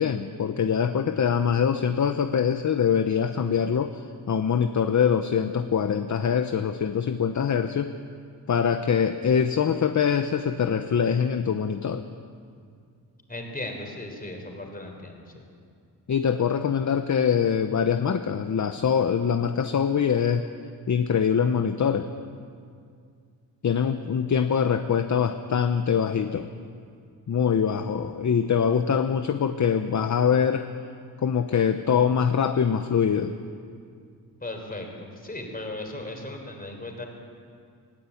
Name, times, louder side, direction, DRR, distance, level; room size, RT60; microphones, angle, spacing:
voice 1, 0.0-7.9 8.5-12.0 16.1-20.4 20.9-22.1 23.6-26.5 27.3-30.6 31.2-33.3, left 7 dB, 45° left, 8 dB, 0.9 m, -23 dB
voice 2, 13.3-15.2 34.4-37.1, left 2 dB, 20° left, 3 dB, 4.0 m, -36 dB
20.0 x 17.0 x 8.6 m, 2.2 s
wide cardioid pair, 115°, 40 cm